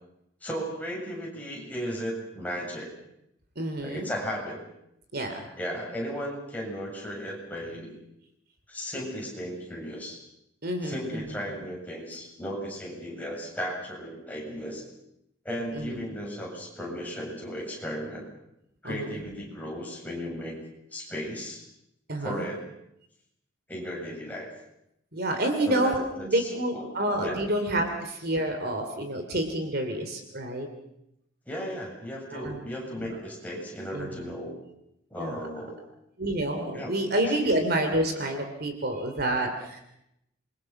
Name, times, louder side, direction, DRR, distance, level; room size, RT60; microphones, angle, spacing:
voice 1, 0.4-2.9 3.8-4.6 5.6-7.9 8.7-10.2 10.8-14.8 15.4-18.3 18.8-20.6 20.9-21.6 22.2-22.6 23.7-24.5 25.7-26.4 26.7-26.8 27.2-27.4 31.5-34.5 35.1-35.8 36.7-36.9 37.2-37.3, equal, 10° left, -3 dB, 7.6 m, -35 dB
voice 2, 3.6-4.1 5.1-5.5 10.6-11.3 15.7-16.1 18.8-19.3 22.1-22.5 25.1-30.7 32.3-32.6 33.0-33.2 33.9-34.3 35.2-35.4 36.2-39.8, right 1 dB, 50° right, 5 dB, 3.0 m, -29 dB
28.0 x 23.5 x 6.0 m, 0.80 s
head